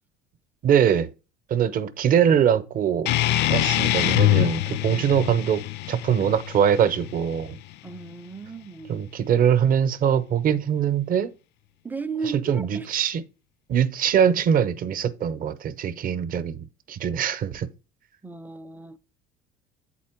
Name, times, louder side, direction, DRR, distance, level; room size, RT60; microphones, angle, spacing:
voice 1, 0.6-1.1 1.5-3.1 3.5-7.6 8.9-11.3 12.5-13.2 13.7-17.7, right 8 dB, 45° right, 0.7 m, -22 dB
sound 1, 3.1-8.1, left 16 dB, 60° left, 0.4 m, -24 dB
voice 2, 7.8-9.1 11.8-12.9 18.2-19.0, right 4 dB, 10° right, 0.4 m, -35 dB
8.0 x 4.2 x 4.4 m
cardioid pair, 115°, 20 cm